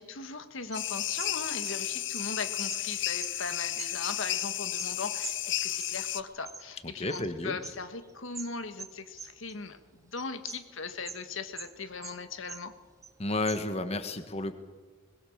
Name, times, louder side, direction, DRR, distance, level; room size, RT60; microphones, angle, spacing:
voice 1, 0.0-12.7, left 4 dB, 80° left, 9 dB, 1.5 m, -39 dB
sound 1, 0.7-6.2, left 13 dB, 60° left, 0.7 m, -33 dB
sound 2, 0.7-5.0 5.2-7.3 7.6-9.8 10.2-11.3 11.5-12.7 13.0-13.9, right 5 dB, 15° right, 0.8 m, -45 dB
voice 2, 6.8-7.6 13.2-14.5, left 2 dB, 30° left, 9 dB, 1.4 m, -32 dB
21.5 x 21.0 x 7.3 m, 1.4 s
head